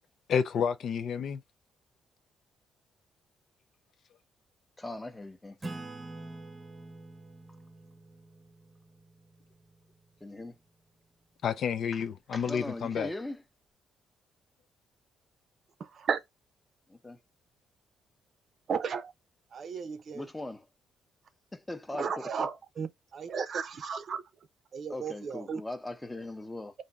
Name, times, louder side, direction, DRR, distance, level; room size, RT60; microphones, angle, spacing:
voice 1, 0.3-1.4 11.4-13.1, left 7 dB, 65° left, 0.4 m, -30 dB
voice 2, 4.8-5.6 10.2-10.6 12.3-13.4 16.9-17.2 20.1-20.7 21.5-22.5 24.9-26.7, left 2 dB, 15° left, 0.7 m, -39 dB
Acoustic guitar / Strum, 5.6-10.6, right 2 dB, 20° right, 0.8 m, -46 dB
voice 3, 18.7-19.1 19.5-20.2 22.0-24.2 24.7-25.6, right 6 dB, 55° right, 0.5 m, -34 dB
3.5 x 2.6 x 4.0 m
cardioid pair, 90°, 0 cm